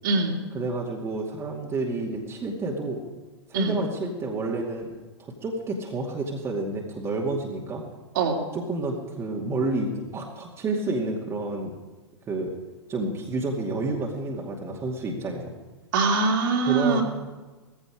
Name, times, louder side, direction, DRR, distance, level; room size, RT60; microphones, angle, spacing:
voice 1, 0.0-0.3 3.5-3.8 8.1-8.4 15.9-17.0, right 4 dB, 50° right, 0 dB, 3.1 m, -23 dB
voice 2, 0.5-3.0 3.5-4.9 5.2-7.8 8.5-11.7 12.3-12.5 12.9-15.5 16.7-17.0, right 2 dB, 20° right, -1 dB, 2.4 m, -29 dB
18.0 x 15.5 x 5.0 m, 1.2 s
figure-of-eight pair, 105°, 14 cm